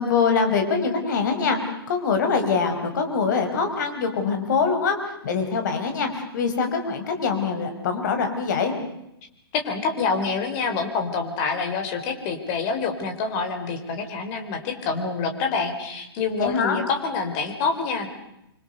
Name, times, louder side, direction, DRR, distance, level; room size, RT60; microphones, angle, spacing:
voice 1, 0.0-8.7 16.4-16.8, left 5 dB, 50° left, 6 dB, 5.1 m, -24 dB
voice 2, 9.5-18.1, left 4 dB, 30° left, 6 dB, 4.5 m, -27 dB
26.5 x 24.5 x 6.9 m, 0.85 s
figure-of-eight pair, 120°, 13 cm